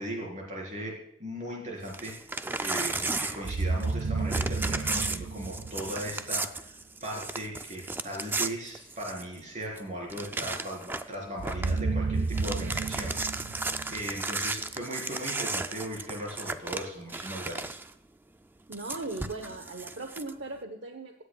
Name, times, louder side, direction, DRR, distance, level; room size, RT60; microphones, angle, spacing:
voice 1, 0.0-2.1 2.6-6.8 7.0-13.6 13.9-17.8, right 1 dB, 35° right, -1 dB, 4.2 m, -38 dB
Crumpling crinkling / Tearing, 1.8-4.0 4.3-9.4 9.8-9.9 10.1-11.1 11.4-11.8 12.2-17.9 18.7-20.3, right 3 dB, 10° right, 0.3 m, -34 dB
sound 1, 3.4-6.4 11.4-14.6, right 3 dB, 85° right, 0.5 m, -31 dB
voice 2, 18.7-21.2, right 2 dB, 65° right, 5 dB, 1.0 m, -38 dB
16.5 x 9.9 x 2.3 m, 0.78 s
head